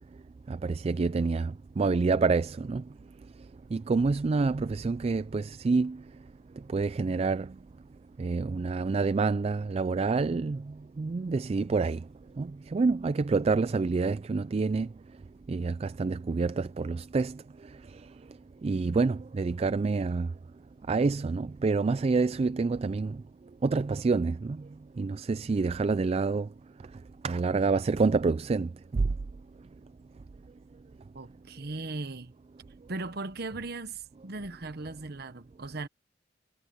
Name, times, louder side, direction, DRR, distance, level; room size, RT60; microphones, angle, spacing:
voice 1, 0.5-2.8 3.7-6.0 6.7-7.5 8.2-10.6 11.0-12.0 12.4-14.9 15.5-17.3 18.6-20.3 20.9-23.2 23.6-24.6 25.0-26.5 27.2-28.7, right 4 dB, 35° right, 0.3 m, -27 dB
voice 2, 31.1-32.3 32.9-35.9, right 3 dB, 60° right, 1.2 m, -38 dB
head